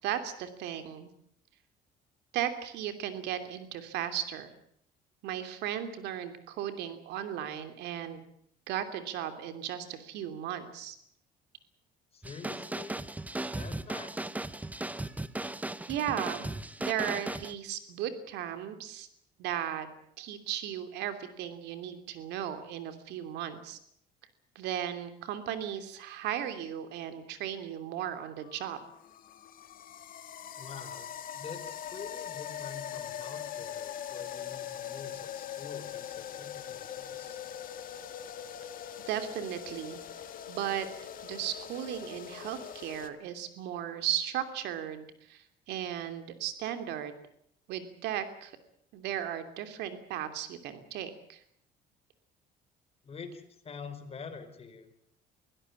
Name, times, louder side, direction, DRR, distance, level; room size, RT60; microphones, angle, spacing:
voice 1, 0.0-1.1 2.3-4.5 5.2-8.2 8.7-11.0 15.9-16.5 16.8-19.1 19.4-19.9 20.2-23.8 24.5-28.8 39.1-40.0 40.5-40.9 41.2-47.1 47.7-48.5 48.9-51.4, right 10 dB, 85° right, 9 dB, 3.0 m, -36 dB
voice 2, 12.1-13.0 13.5-14.3 30.6-31.1 31.3-37.4 53.0-54.9, left 5 dB, 35° left, 7 dB, 4.6 m, -46 dB
sound 1, 12.2-17.5, right 2 dB, 10° right, 0.9 m, -37 dB
sound 2, 28.4-43.1, left 10 dB, 55° left, 1.9 m, -42 dB
23.5 x 16.5 x 8.6 m, 0.68 s
cardioid pair, 110°, 17 cm